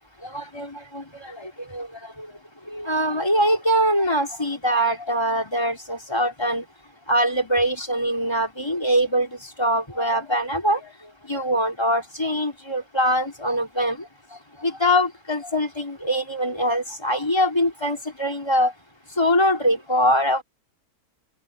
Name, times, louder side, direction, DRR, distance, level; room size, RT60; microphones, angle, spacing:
voice 1, 0.2-2.3 2.7-6.6 7.1-9.3 9.6-10.8 11.3-14.0 14.6-18.7 19.2-20.4, equal, 15° left, 3.7 m, -23 dB
open air
omnidirectional pair, 1.6 m